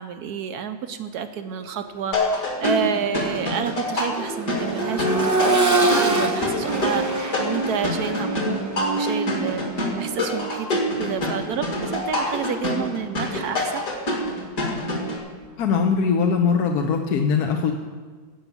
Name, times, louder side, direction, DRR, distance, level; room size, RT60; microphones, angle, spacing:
voice 1, 0.0-13.9, right 7 dB, 70° right, 9 dB, 1.0 m, -30 dB
Accelerating revving vroom, 1.9-2.1 2.5-12.4 14.1-14.2, right 3 dB, 20° right, 0.4 m, -26 dB
sound 1, 2.1-15.2, left 1 dB, 45° left, 2.4 m, -26 dB
voice 2, 15.6-17.7, left 5 dB, 65° left, 3 dB, 1.1 m, -21 dB
14.0 x 5.6 x 8.3 m, 1.4 s
omnidirectional pair, 2.1 m